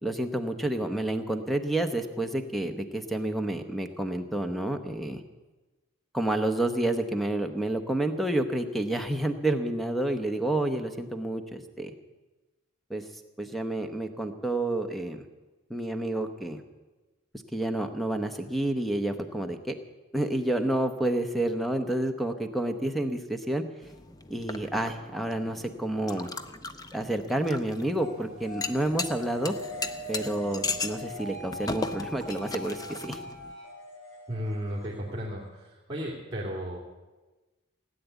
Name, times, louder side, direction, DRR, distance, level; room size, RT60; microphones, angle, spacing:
voice 1, 0.0-5.2 6.1-11.9 12.9-13.0 13.4-15.3 15.7-16.6 17.5-19.7 20.1-23.6 24.3-26.3 26.9-29.5 30.1-33.2, right 1 dB, ahead, 7 dB, 0.9 m, -29 dB
Cafe da manha, 23.8-33.5, left 3 dB, 20° left, 0.6 m, -38 dB
sound 1, 28.0-35.5, left 1 dB, 70° left, 5.5 m, -42 dB
voice 2, 34.3-36.8, equal, 20° right, -7 dB, 2.6 m, -34 dB
17.5 x 9.4 x 8.2 m, 1.2 s
head